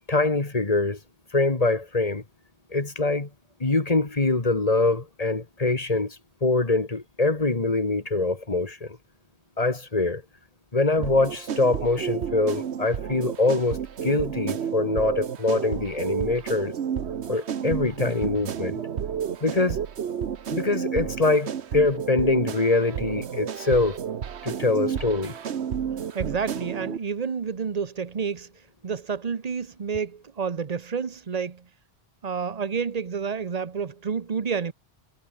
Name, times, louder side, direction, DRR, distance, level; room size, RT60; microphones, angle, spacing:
voice 1, 0.1-1.0 1.3-2.2 2.7-3.3 3.6-9.0 9.6-10.2 10.7-16.7 17.3-18.8 19.4-19.8 20.5-24.0 24.4-25.3, left 3 dB, 35° left, 2.2 m, -24 dB
sound 1, 11.0-27.0, right 8 dB, 90° right, 1.3 m, -31 dB
voice 2, 26.1-28.5 28.8-31.7 32.2-34.7, right 6 dB, 40° right, 1.0 m, -29 dB
omnidirectional pair, 1.1 m